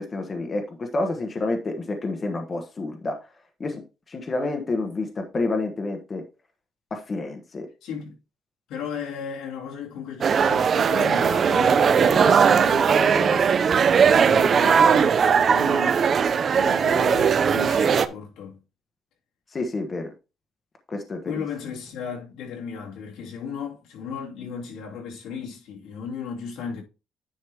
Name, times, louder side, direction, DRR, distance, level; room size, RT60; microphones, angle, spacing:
voice 1, 0.0-3.2 3.6-3.8 4.1-6.2 6.9-7.7 19.5-20.0 20.9-21.4, left 2 dB, 25° left, 1.0 m, -29 dB
voice 2, 7.8-8.2 8.7-13.5 14.1-16.1 16.6-18.6 21.2-26.8, left 6 dB, 90° left, 2.7 m, -35 dB
sound 1, 10.2-18.1, right 6 dB, 35° right, 0.5 m, -19 dB
10.0 x 5.0 x 3.4 m
cardioid pair, 175°, 0 cm